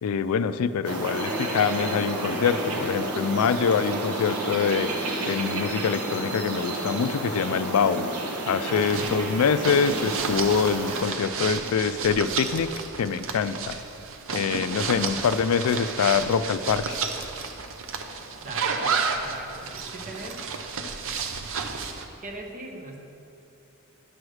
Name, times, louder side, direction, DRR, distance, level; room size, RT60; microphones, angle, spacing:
voice 1, 0.0-4.9 5.3-8.1 8.5-12.7 13.0-13.8 14.3-17.0, left 6 dB, 70° left, 13 dB, 0.3 m, -25 dB
sound 1, 0.8-11.0, right 2 dB, 85° right, 1.1 m, -30 dB
voice 2, 8.6-9.4 10.8-11.2 18.4-20.4 22.1-23.0, right 2 dB, 40° right, 2 dB, 1.0 m, -41 dB
sound 2, 8.8-22.0, right 5 dB, 60° right, 0.7 m, -32 dB
10.5 x 4.8 x 6.3 m, 2.7 s
head